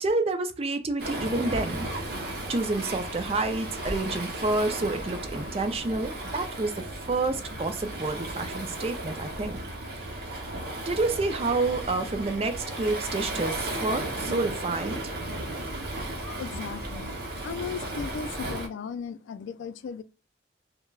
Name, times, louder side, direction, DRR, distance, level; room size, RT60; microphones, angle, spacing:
voice 1, 0.0-1.9 2.5-9.6 9.9-10.1 10.9-15.1, right 3 dB, 30° right, 0.3 m, -29 dB
Waves surf, 1.0-18.7, right 1 dB, 50° right, 0.7 m, -35 dB
voice 2, 16.4-17.1 17.4-20.0, left 6 dB, 75° left, 0.3 m, -36 dB
3.2 x 2.1 x 2.3 m
head